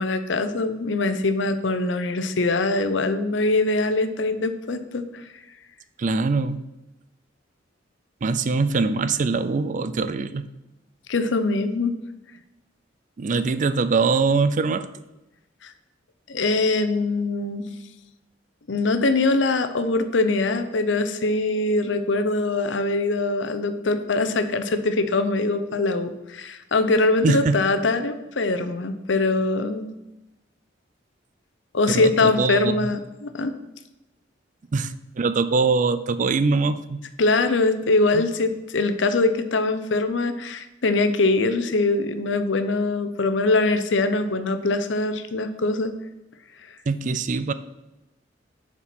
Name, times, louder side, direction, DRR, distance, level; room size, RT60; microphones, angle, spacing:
voice 1, 0.0-5.2 11.1-12.0 15.6-15.7 16.3-17.7 18.7-29.9 31.7-33.5 37.2-45.9, left 2 dB, 70° left, 10 dB, 0.7 m, -23 dB
voice 2, 6.0-6.6 8.2-10.4 13.2-14.9 27.2-27.6 31.9-32.8 34.7-37.0 38.1-38.3 46.9-47.5, right 4 dB, 40° right, 13 dB, 0.4 m, -23 dB
7.0 x 4.4 x 6.0 m, 0.97 s
head